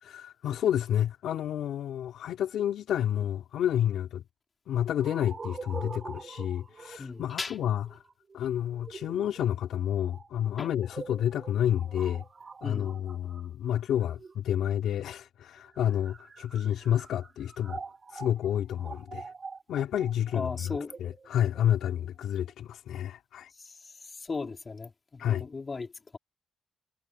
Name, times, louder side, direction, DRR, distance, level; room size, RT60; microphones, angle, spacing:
voice 1, 0.0-4.2 4.7-8.0 8.3-12.2 12.6-17.8 18.1-19.3 19.7-23.5 25.2-25.5, left 10 dB, 80° left, 4.1 m, -30 dB
sound 1, 5.0-14.8 15.6-22.5, right 4 dB, 40° right, 6.8 m, -45 dB
voice 2, 7.0-7.5 10.6-10.7 12.6-12.9 20.3-20.9 23.7-23.8 24.3-25.9, left 4 dB, 35° left, 4.0 m, -36 dB
cardioid pair, 85°, 0 cm